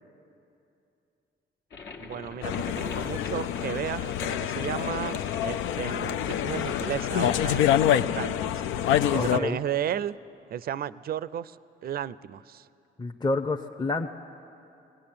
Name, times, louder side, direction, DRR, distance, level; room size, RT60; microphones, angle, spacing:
sound 1, 1.7-7.4, left 4 dB, 65° left, 1.5 m, -42 dB
voice 1, 2.0-10.2 10.5-11.6 11.8-12.7, right 10 dB, 50° right, 18 dB, 0.5 m, -34 dB
sound 2, 2.4-9.4, left 10 dB, 85° left, 0.5 m, -26 dB
voice 2, 9.2-9.6 13.0-14.1, left 2 dB, 20° left, 2 dB, 0.8 m, -28 dB
20.5 x 17.5 x 8.7 m, 2.7 s
cardioid pair, 90°, 20 cm